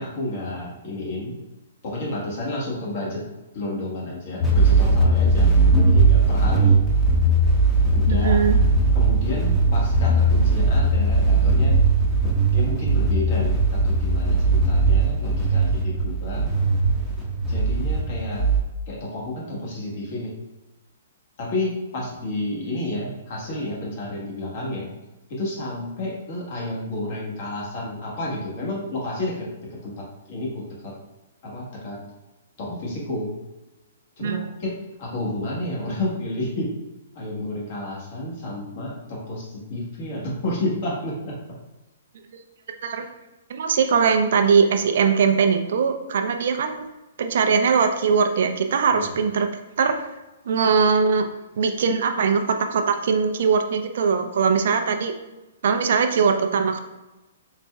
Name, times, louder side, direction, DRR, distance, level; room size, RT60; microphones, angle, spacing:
voice 1, 0.0-1.3 1.8-3.2 3.5-5.5 5.9-6.8 7.9-8.4 8.9-11.8 12.5-16.5 17.5-18.5 18.9-20.3 21.4-24.9 25.3-30.9 31.4-32.0 32.6-33.3 34.2-34.7 35.0-36.7 37.1-41.3 48.9-49.1, left 1 dB, 55° left, -4 dB, 1.5 m, -30 dB
sound 1, 4.4-18.6, right 2 dB, 5° left, 0.8 m, -19 dB
voice 2, 8.1-8.6 34.2-34.4 42.3-42.4 42.8-43.1 43.5-46.8 47.2-49.5 49.8-50.0 50.5-51.3 51.6-55.1 55.6-56.8, right 5 dB, 65° right, 6 dB, 0.4 m, -21 dB
4.1 x 3.2 x 2.2 m, 1.0 s
hypercardioid pair, 125°, 0 cm